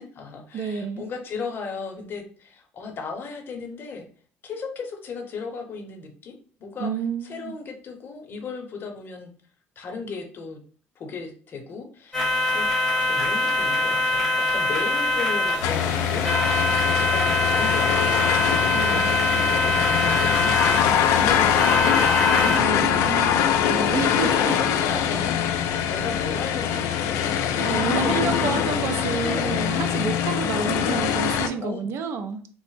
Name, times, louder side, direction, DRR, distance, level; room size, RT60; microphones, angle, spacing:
voice 1, 0.0-4.1 4.4-6.9 7.2-9.3 9.8-10.6 11.0-12.7 13.0-16.3 16.9-20.5 21.2-24.3 24.6-25.4 25.9-27.2 27.6-28.9 29.2-29.6 31.6-31.9, left 4 dB, 45° left, 3 dB, 0.7 m, -35 dB
voice 2, 0.5-1.1 6.8-7.6 18.7-19.2 22.5-23.3 23.7-24.6 27.6-32.5, right 6 dB, 60° right, 8 dB, 0.4 m, -29 dB
sound 1, 12.1-22.6, left 2 dB, ahead, 1.0 m, -24 dB
sound 2, 15.6-31.5, left 9 dB, 80° left, 0.3 m, -23 dB
3.2 x 2.0 x 3.1 m, 0.43 s
cardioid pair, 125°, 5 cm